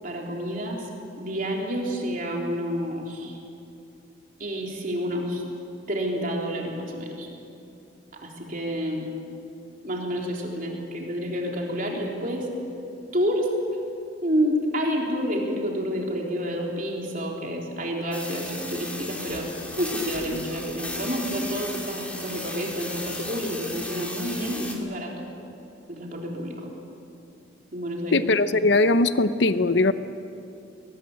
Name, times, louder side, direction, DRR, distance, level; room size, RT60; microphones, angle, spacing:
voice 1, 0.0-0.9 1.2-3.4 4.4-5.4 5.9-7.3 8.2-9.1 9.8-12.5 13.1-13.5 14.2-19.5 19.8-25.2 25.9-26.7 27.7-28.3, equal, 45° right, -1 dB, 3.7 m, -29 dB
sound 1, 18.1-24.8, left 1 dB, 5° left, 2.5 m, -36 dB
voice 2, 28.1-29.9, left 2 dB, 60° left, 12 dB, 0.8 m, -20 dB
21.5 x 20.0 x 8.5 m, 2.7 s
head